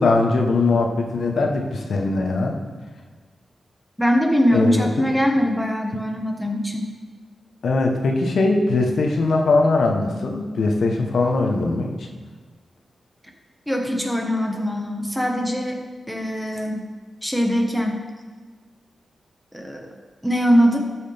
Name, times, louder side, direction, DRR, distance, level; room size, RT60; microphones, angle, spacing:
voice 1, 0.0-2.6 4.5-4.9 7.6-12.1, left 3 dB, 75° left, 2 dB, 1.1 m, -20 dB
voice 2, 4.0-6.9 13.7-15.8 16.1-16.9 17.2-18.0 19.5-19.9 20.2-20.8, equal, ahead, 2 dB, 1.5 m, -22 dB
13.5 x 6.2 x 3.5 m, 1.4 s
cardioid pair, 70°, 0 cm